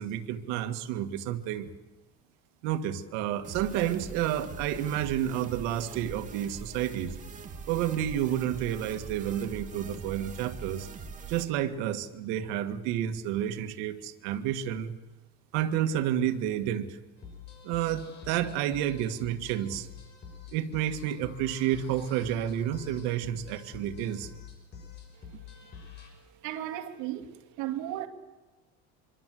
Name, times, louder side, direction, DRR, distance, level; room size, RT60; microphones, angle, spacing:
voice 1, 0.0-1.7 2.6-7.2 7.7-10.9 11.3-14.9 15.5-17.0 17.6-19.9 20.5-24.3, right 11 dB, 90° right, 2.0 m, -30 dB
sound 1, 3.4-11.4, right 4 dB, 25° right, 2.5 m, -43 dB
sound 2, 17.2-26.1, left 7 dB, 35° left, 6.4 m, -47 dB
voice 2, 26.4-28.1, right 13 dB, 75° right, 2.8 m, -35 dB
25.5 x 25.0 x 7.8 m
cardioid pair, 175°, 30 cm